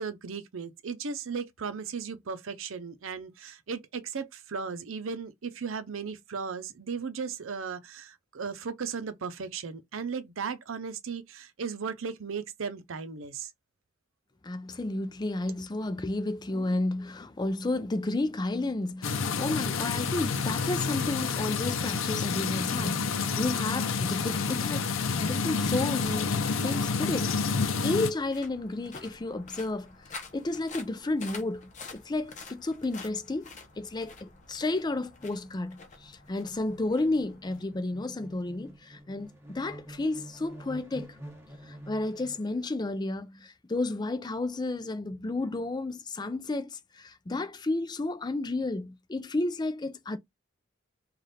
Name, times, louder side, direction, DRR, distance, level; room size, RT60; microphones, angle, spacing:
voice 1, 0.0-13.5, right 5 dB, 85° right, 0.6 m, -36 dB
voice 2, 14.4-24.9 25.2-29.9 30.3-33.5 33.8-41.2 41.7-50.2, left 2 dB, 20° left, 0.4 m, -32 dB
sound 1, 19.0-28.1, left 5 dB, 80° left, 0.6 m, -29 dB
sound 2, 25.0-38.2, left 4 dB, 40° left, 0.8 m, -49 dB
sound 3, 33.4-42.7, right 1 dB, 15° right, 1.2 m, -49 dB
3.3 x 2.4 x 4.1 m
head